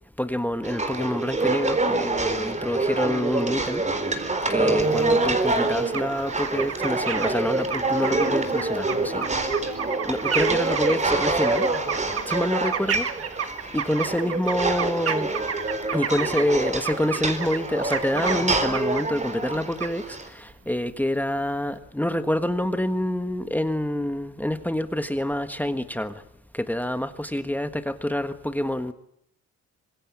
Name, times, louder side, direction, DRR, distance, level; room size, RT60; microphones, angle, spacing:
voice 1, 0.2-3.8 4.1-9.3 10.0-11.7 12.3-13.0 13.7-15.3 15.9-26.1 26.5-28.9, left 1 dB, 5° left, 1.4 m, -27 dB
sound 1, 0.6-20.3, right 2 dB, 25° right, 4.1 m, -26 dB
sound 2, 4.8-5.4 5.9-6.0 6.3-19.0 19.8-19.9, right 7 dB, 50° right, 2.0 m, -31 dB
25.5 x 21.5 x 8.6 m
cardioid pair, 90°, 30 cm